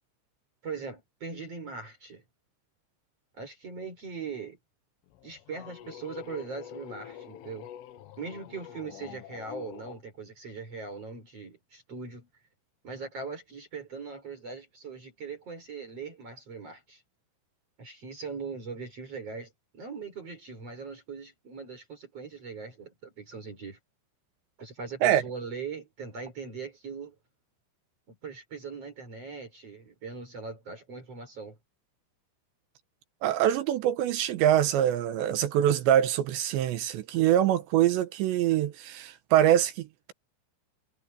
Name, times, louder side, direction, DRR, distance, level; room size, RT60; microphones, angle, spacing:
voice 1, 0.6-2.2 3.4-4.6 5.2-7.7 8.2-12.3 12.8-17.0 17.8-23.8 24.6-27.2 28.1-31.6, right 5 dB, 35° right, 5.1 m, -40 dB
sound 1, 5.1-10.0, left 10 dB, 85° left, 4.0 m, -46 dB
voice 2, 33.2-40.1, right 11 dB, 75° right, 3.2 m, -24 dB
omnidirectional pair, 5.6 m